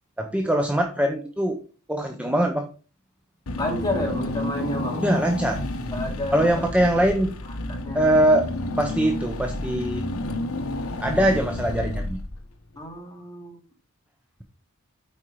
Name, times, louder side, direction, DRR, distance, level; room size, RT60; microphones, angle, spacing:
voice 1, 0.2-1.6 1.9-2.7 5.0-5.6 6.3-7.3 7.9-8.4 8.8-10.0 11.0-12.2, right 1 dB, 5° right, 3 dB, 0.7 m, -22 dB
Car / Engine, 3.5-12.6, left 1 dB, 70° left, 1.1 m, -30 dB
voice 2, 3.6-5.0 5.9-6.7 7.5-8.1 12.8-13.6, left 1 dB, 20° left, -1 dB, 2.8 m, -31 dB
8.6 x 4.5 x 4.9 m, 0.37 s
head